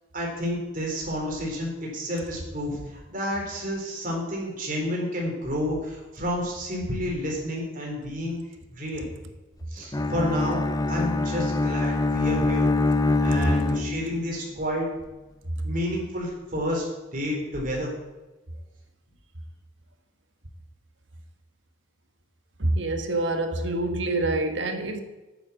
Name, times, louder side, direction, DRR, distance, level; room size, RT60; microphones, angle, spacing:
voice 1, 0.1-8.4 8.7-9.1 9.7-10.6 10.9-12.7 13.2-14.9 15.6-16.9 17.1-17.9, equal, 45° right, 3.9 m, -30 dB
Bowed string instrument, 9.9-14.3, left 2 dB, 20° left, 0.6 m, -24 dB
voice 2, 22.6-25.0, right 2 dB, 70° right, 1.4 m, -26 dB
9.4 x 8.1 x 7.4 m
head